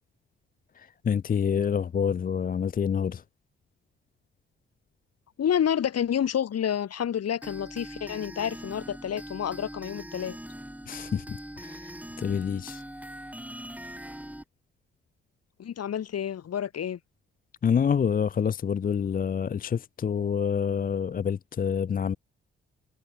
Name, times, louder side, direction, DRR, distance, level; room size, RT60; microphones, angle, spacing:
voice 1, 0.8-3.2 10.9-12.8 17.6-22.2, left 7 dB, 30° left, 0.5 m, -27 dB
voice 2, 5.4-10.4 15.6-17.0, left 9 dB, 55° left, 2.5 m, -29 dB
sound 1, 7.4-14.4, right 1 dB, 5° right, 4.4 m, -42 dB
hypercardioid pair, 40°, 29 cm